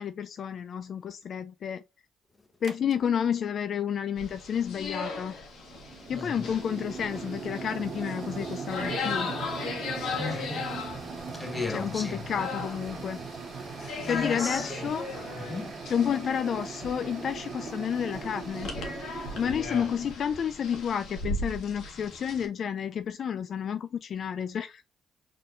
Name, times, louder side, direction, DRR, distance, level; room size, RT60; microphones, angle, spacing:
voice 1, 0.0-1.8 2.6-5.3 6.1-9.3 11.7-13.2 14.1-15.1 15.9-18.7 19.4-24.8, left 8 dB, 60° left, 0.3 m, -30 dB
sound 1, 2.6-2.9 5.2-20.1, right 5 dB, 50° right, 0.8 m, -39 dB
sound 2, 4.2-22.5, left 4 dB, 75° left, 1.5 m, -38 dB
voice 2, 6.1-6.5 10.2-10.8 11.3-12.3 13.5-15.0 15.3-15.9, left 3 dB, 20° left, 0.9 m, -36 dB
4.3 x 3.7 x 2.5 m
cardioid pair, 90°, 0 cm